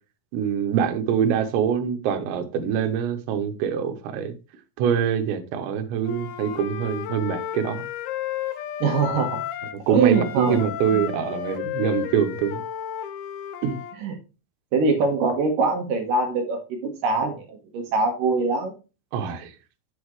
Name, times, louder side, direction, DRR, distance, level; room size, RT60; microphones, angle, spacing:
voice 1, 0.3-4.3 4.8-7.9 9.9-12.6 13.6-13.8 19.1-19.5, right 8 dB, 85° right, 3.2 m, -24 dB
Wind instrument woodwind instrument, 6.0-9.8 10.1-14.0, left 11 dB, 90° left, 3.2 m, -33 dB
voice 2, 8.8-9.4 9.9-10.7 10.9-11.1 14.0-14.1 14.7-18.7, right 4 dB, 65° right, 2.4 m, -23 dB
8.5 x 8.0 x 3.1 m
omnidirectional pair, 5.1 m